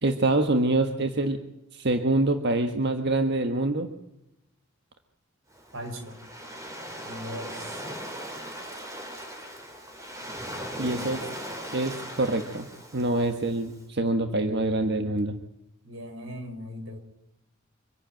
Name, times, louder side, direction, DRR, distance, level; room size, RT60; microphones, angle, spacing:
voice 1, 0.0-1.4 1.7-3.9 10.8-11.2 11.7-12.7 12.9-15.3, right 2 dB, 60° right, 6 dB, 1.5 m, -25 dB
Waves surf, 5.5-13.7, equal, 15° right, 3.7 m, -39 dB
voice 2, 5.7-6.2 7.1-7.8 15.8-17.0, equal, 90° right, 7 dB, 4.5 m, -38 dB
26.0 x 11.0 x 9.1 m, 0.87 s
head